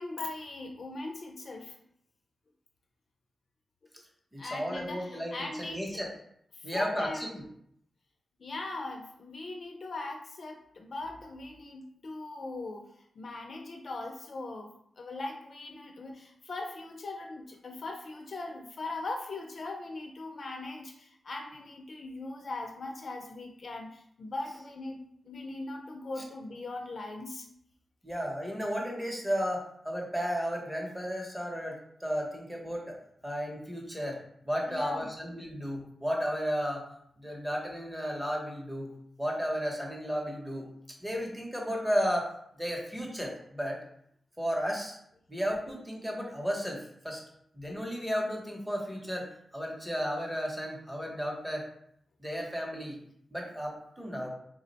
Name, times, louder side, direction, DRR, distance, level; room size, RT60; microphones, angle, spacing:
voice 1, 0.0-1.7 4.4-6.0 6.5-7.3 8.4-12.9 13.2-14.7 15.0-27.5 34.7-35.1, left 2 dB, 45° left, 2 dB, 0.4 m, -40 dB
voice 2, 4.3-6.1 6.6-7.3 26.2-26.3 28.0-33.0 33.2-34.2 34.4-36.8 37.2-38.9 39.2-40.7 41.0-43.8 44.4-45.0 45.3-47.2 47.5-49.3 49.5-51.7 52.2-53.0 53.3-54.3, equal, 5° right, -1 dB, 0.7 m, -33 dB
3.5 x 2.1 x 3.9 m, 0.70 s
wide cardioid pair, 165°, 0 cm